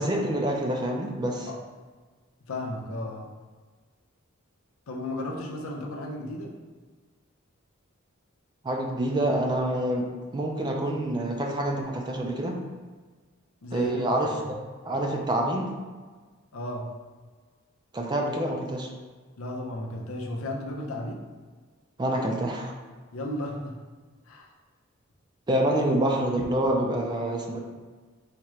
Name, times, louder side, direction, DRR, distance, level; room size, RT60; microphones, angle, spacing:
voice 1, 0.0-1.5 8.6-12.6 13.7-14.5 14.9-15.7 17.9-18.9 22.0-22.7 25.5-27.6, right 1 dB, 20° right, 1 dB, 0.4 m, -27 dB
voice 2, 2.5-3.3 4.9-6.5 13.6-14.4 16.5-16.9 19.4-21.2 23.1-23.8 24.3-24.5, left 1 dB, 85° left, 1 dB, 0.6 m, -34 dB
4.3 x 2.4 x 3.1 m, 1.4 s
head